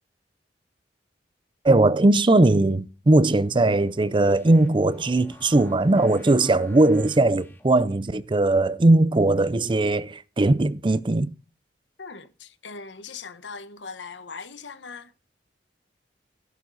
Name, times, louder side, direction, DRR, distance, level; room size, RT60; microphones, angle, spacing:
voice 1, 1.6-11.3, right 2 dB, 30° right, 0.5 m, -19 dB
sound 1, 3.5-8.0, left 1 dB, 15° left, 2.0 m, -49 dB
voice 2, 12.0-15.1, left 4 dB, 80° left, 1.2 m, -40 dB
16.0 x 8.2 x 4.0 m
head